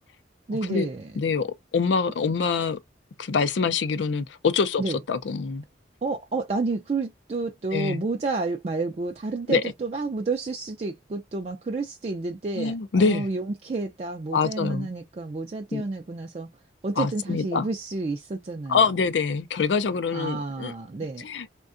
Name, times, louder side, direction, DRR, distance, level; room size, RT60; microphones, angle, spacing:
voice 1, 0.5-1.1 4.8-5.0 6.0-16.5 16.8-18.9 20.1-21.2, right 3 dB, 35° right, 0.4 m, -30 dB
voice 2, 1.2-1.5 1.7-2.8 3.2-4.8 5.1-5.6 7.7-8.0 9.5-9.6 12.6-13.3 14.3-14.9 15.7-15.8 17.0-17.7 18.7-20.7 21.2-21.5, left 5 dB, 85° left, 0.5 m, -24 dB
3.5 x 2.2 x 2.4 m
head